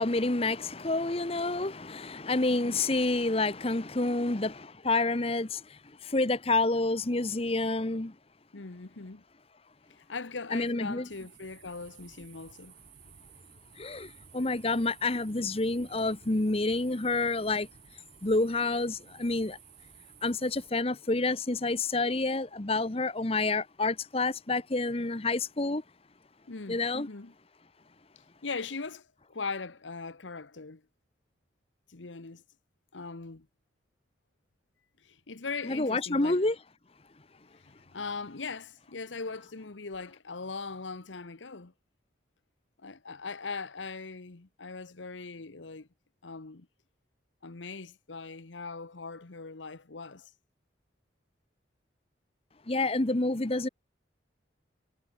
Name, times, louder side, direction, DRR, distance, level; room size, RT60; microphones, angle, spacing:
voice 1, 0.0-8.1 10.5-11.1 13.8-17.7 18.2-19.6 20.2-25.8 26.7-27.1 35.6-36.6 52.7-53.7, left 2 dB, 30° left, 1.0 m, -28 dB
voice 2, 2.5-2.8 8.5-9.2 9.9-12.7 26.5-27.3 28.4-30.8 31.9-32.4 32.9-33.5 35.0-36.4 37.6-41.7 42.8-45.9 46.2-46.7 47.4-50.3, left 4 dB, 90° left, 1.2 m, -40 dB
sound 1, 11.1-20.7, right 7 dB, 70° right, 7.6 m, -55 dB
head